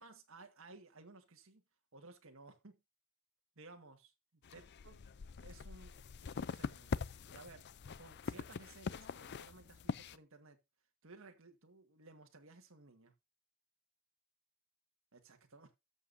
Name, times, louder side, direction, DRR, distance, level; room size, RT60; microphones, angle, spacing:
voice 1, 0.0-1.6 1.9-2.8 3.5-5.0 5.3-7.0 7.3-7.7 8.0-10.6 11.0-13.1 15.1-15.8, right 3 dB, 65° right, 1.7 m, -58 dB
sound 1, 4.4-10.2, left 5 dB, 55° left, 0.5 m, -43 dB
13.5 x 7.1 x 2.6 m
head